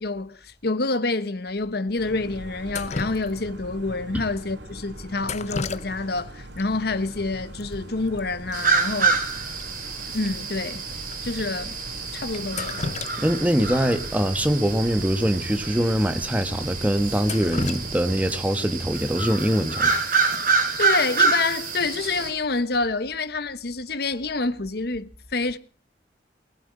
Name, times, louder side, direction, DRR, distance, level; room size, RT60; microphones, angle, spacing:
voice 1, 0.0-9.2 10.1-10.8 11.2-11.8 12.1-12.8 20.8-25.6, left 3 dB, 65° left, 1.1 m, -27 dB
sound 1, 2.0-18.4, right 1 dB, 90° right, 2.8 m, -41 dB
Drip, 2.7-3.7 5.2-6.3 6.6-6.7 7.6-7.7 8.0-8.2 8.5-8.6 9.1-9.2 9.6-9.7 10.3-10.4 11.1-11.2 12.3-13.5 13.9-14.0 15.3-15.4 15.8-15.9 16.4-16.5 17.0-18.6 20.6-20.9 21.3-21.7, left 4 dB, 40° left, 0.7 m, -34 dB
sound 2, 8.5-22.3, right 4 dB, 50° right, 3.4 m, -27 dB
voice 2, 13.2-19.9, equal, 10° right, 1.3 m, -23 dB
20.0 x 7.9 x 8.8 m
head